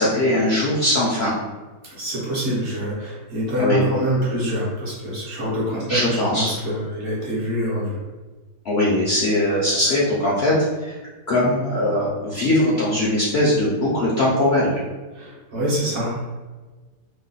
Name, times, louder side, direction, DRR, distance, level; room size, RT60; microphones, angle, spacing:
voice 1, 0.0-1.3 3.6-3.8 5.9-6.5 8.6-10.6 10.8-10.9 11.3-14.7, left 1 dB, 65° left, -6 dB, 0.6 m, -20 dB
voice 2, 1.8-8.0 15.1-16.2, equal, 55° right, -6 dB, 0.9 m, -25 dB
3.0 x 2.1 x 3.8 m, 1.3 s
omnidirectional pair, 1.7 m